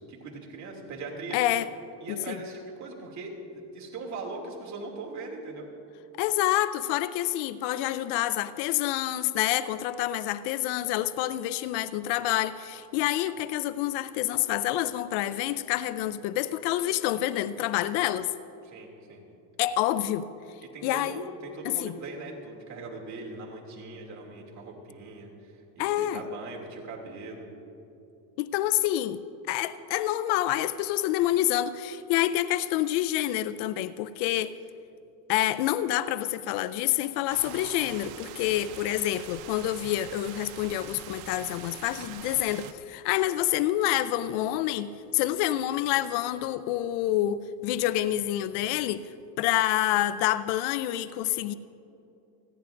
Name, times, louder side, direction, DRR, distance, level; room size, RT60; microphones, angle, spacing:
voice 1, 0.0-1.4 2.0-5.7 18.6-19.2 20.6-27.5, right 3 dB, 40° right, -1 dB, 2.7 m, -40 dB
voice 2, 1.3-1.7 2.1-2.4 6.2-18.3 19.6-20.3 20.8-21.2 21.6-21.9 25.8-26.2 28.4-29.2 29.5-34.5 35.3-49.1 49.4-51.5, left 13 dB, 70° left, 14 dB, 0.6 m, -27 dB
sound 1, 37.3-42.7, right 12 dB, 80° right, 0.8 m, -44 dB
28.5 x 10.5 x 2.6 m, 2.8 s
cardioid pair, 130°, 42 cm